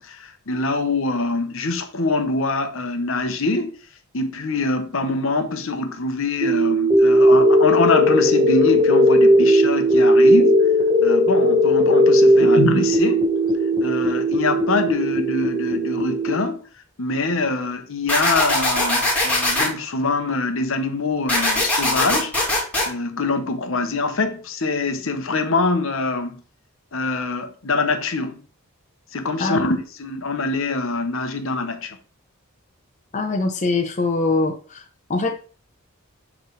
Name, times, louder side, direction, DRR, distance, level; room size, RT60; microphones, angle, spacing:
voice 1, 0.0-3.8 4.1-10.5 11.0-13.2 13.8-16.6 17.0-22.3 22.9-26.4 26.9-28.4 29.1-32.0, left 3 dB, 60° left, 0.9 m, -24 dB
sound 1, 6.4-16.4, equal, 25° right, 1.0 m, -17 dB
sound 2, 18.1-19.7 21.3-22.9, left 1 dB, 5° left, 2.1 m, -20 dB
voice 2, 33.1-34.8 35.1-35.4, left 3 dB, 35° left, 0.7 m, -22 dB
7.3 x 3.2 x 4.6 m
head